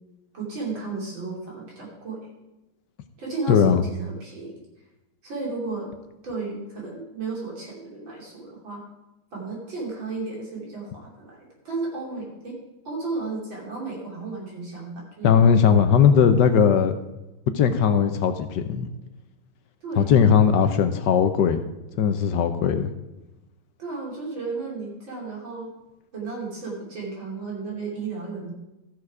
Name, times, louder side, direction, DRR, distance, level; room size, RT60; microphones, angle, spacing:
voice 1, 0.3-2.2 3.2-4.6 5.2-5.9 6.2-8.8 9.3-12.6 12.9-15.4 19.8-20.1 23.8-25.7 26.1-28.5, right 3 dB, 75° right, -3 dB, 3.8 m, -33 dB
voice 2, 3.5-3.8 15.2-16.9 17.5-18.9 20.0-21.6 22.0-22.9, left 7 dB, 70° left, 9 dB, 1.2 m, -18 dB
13.5 x 6.7 x 4.8 m, 0.99 s
omnidirectional pair, 2.1 m